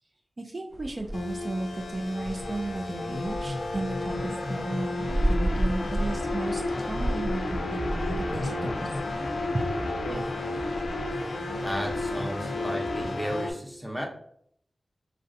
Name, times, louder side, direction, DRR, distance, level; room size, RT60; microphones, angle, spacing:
voice 1, 0.4-8.9 9.5-9.7, right 2 dB, 45° right, 2 dB, 0.3 m, -34 dB
sound 1, 0.7-12.7, right 1 dB, 60° right, 0.8 m, -35 dB
sound 2, 1.1-13.5, left 2 dB, 90° left, 0.4 m, -32 dB
voice 2, 11.6-14.1, equal, ahead, -1 dB, 0.7 m, -34 dB
3.2 x 2.5 x 2.6 m, 0.65 s
wide cardioid pair, 65°, 0 cm